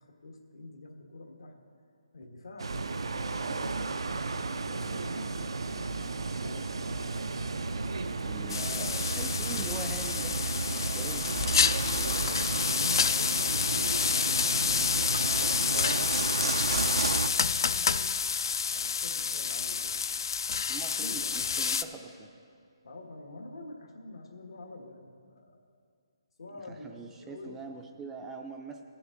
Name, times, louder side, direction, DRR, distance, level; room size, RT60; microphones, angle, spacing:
voice 1, 0.0-1.5 2.1-2.7 3.4-6.0 6.4-7.1 11.7-14.0 14.3-18.1 18.7-20.0 20.8-21.4 22.8-25.7 26.4-27.6, left 2 dB, 80° left, 2 dB, 1.5 m, -47 dB
sound 1, 2.6-17.3, right 3 dB, 80° right, 0.5 m, -33 dB
voice 2, 8.2-10.4 10.7-11.3 20.7-22.3 26.7-28.8, right 4 dB, 10° right, 3 dB, 0.4 m, -43 dB
sound 2, 8.5-21.8, left 6 dB, 55° left, 0.4 m, -29 dB
15.5 x 7.0 x 3.8 m, 2.3 s
hypercardioid pair, 160°, 3 cm